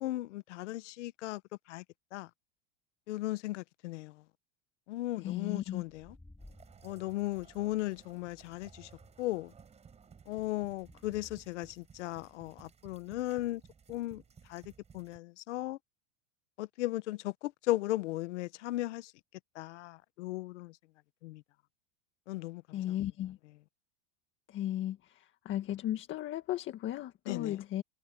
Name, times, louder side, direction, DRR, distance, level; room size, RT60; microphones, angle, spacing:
voice 1, 0.0-1.4 1.7-1.8 2.1-2.3 3.1-4.1 4.9-6.1 6.8-8.9 9.2-9.5 10.3-13.6 13.9-14.2 14.5-14.6 14.9-15.8 16.6-19.1 19.5-20.7 21.2-21.4 22.3-22.6 27.3-27.6, left 17 dB, 85° left, 1.1 m, -36 dB
voice 2, 5.2-5.8 22.7-23.4 24.5-27.8, left 12 dB, 35° left, 1.8 m, -36 dB
sound 1, 6.0-11.4, left 2 dB, 5° left, 2.1 m, -59 dB
sound 2, 6.4-15.2, right 6 dB, 20° right, 4.9 m, -58 dB
supercardioid pair, 150°, 35 cm